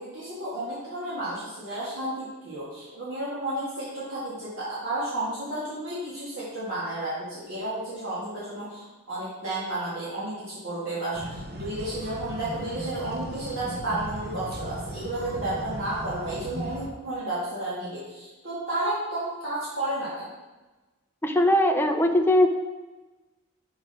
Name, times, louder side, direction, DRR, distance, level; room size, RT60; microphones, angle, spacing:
voice 1, 0.0-20.3, right 1 dB, 65° right, -9 dB, 1.8 m, -32 dB
sound 1, 11.1-16.9, right 1 dB, 45° right, 0.8 m, -37 dB
voice 2, 21.2-22.5, left 1 dB, 10° left, 5 dB, 0.4 m, -20 dB
5.1 x 4.9 x 5.4 m, 1.2 s
head